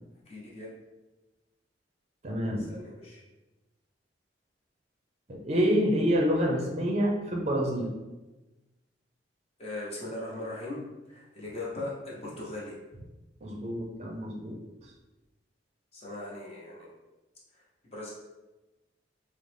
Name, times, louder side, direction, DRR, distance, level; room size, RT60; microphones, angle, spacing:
voice 1, 0.3-0.7 2.6-3.2 9.6-12.7 15.9-16.9 17.5-18.1, left 2 dB, 35° left, -6 dB, 0.7 m, -39 dB
voice 2, 2.2-2.7 5.3-7.9 13.4-14.6, equal, 35° right, 0 dB, 0.5 m, -27 dB
3.8 x 2.0 x 3.2 m, 1.1 s
head